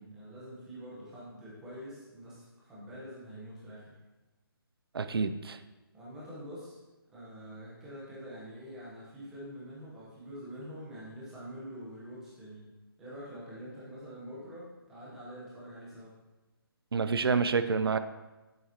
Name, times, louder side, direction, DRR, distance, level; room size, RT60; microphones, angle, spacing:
voice 1, 0.1-4.0 5.9-6.8 7.1-12.7 13.0-16.1, equal, 5° right, -8 dB, 0.9 m, -45 dB
voice 2, 4.9-5.6 16.9-18.0, right 5 dB, 75° right, 11 dB, 0.6 m, -28 dB
7.8 x 7.6 x 2.8 m, 1.1 s
hypercardioid pair, 175°, 13 cm